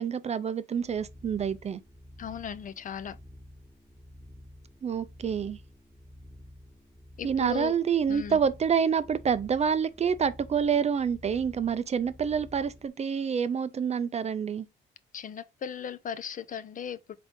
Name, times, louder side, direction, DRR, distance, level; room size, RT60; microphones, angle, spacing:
voice 1, 0.0-1.8 4.8-5.6 7.2-14.7, right 7 dB, 35° right, 0.4 m, -27 dB
sound 1, 0.8-12.9, equal, 10° left, 1.3 m, -51 dB
voice 2, 2.2-3.2 7.2-7.7 8.1-8.4 15.1-17.2, left 8 dB, 45° left, 0.4 m, -37 dB
3.7 x 3.5 x 3.6 m
cardioid pair, 90°, 20 cm